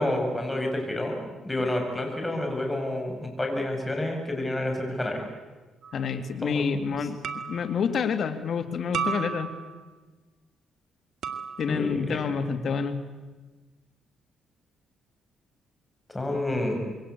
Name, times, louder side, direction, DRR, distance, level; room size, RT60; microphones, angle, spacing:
voice 1, 0.0-5.2 6.4-7.0 11.7-12.2 16.1-16.9, left 1 dB, 15° left, 2 dB, 7.8 m, -29 dB
sound 1, 5.8-6.1 7.2-7.8 8.9-9.8 11.2-11.9, right 7 dB, 70° right, 2.3 m, -33 dB
voice 2, 5.9-7.2 7.5-9.5 11.6-13.0, left 6 dB, 55° left, 8 dB, 2.5 m, -28 dB
27.5 x 23.0 x 8.5 m, 1.3 s
cardioid pair, 90°, 0 cm